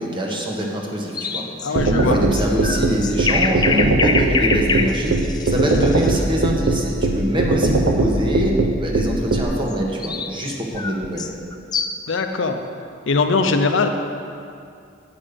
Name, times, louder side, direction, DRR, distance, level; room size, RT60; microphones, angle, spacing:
voice 1, 0.0-5.1 5.5-11.3, equal, 25° right, -1 dB, 1.3 m, -24 dB
sound 1, 1.1-6.2 9.7-12.1, left 4 dB, 20° left, 0.4 m, -25 dB
voice 2, 1.6-2.3 12.1-12.6 13.1-13.9, left 4 dB, 70° left, 6 dB, 0.6 m, -20 dB
sound 2, 1.8-9.4, right 2 dB, 90° right, 0.7 m, -19 dB
8.5 x 5.3 x 6.8 m, 2.4 s
head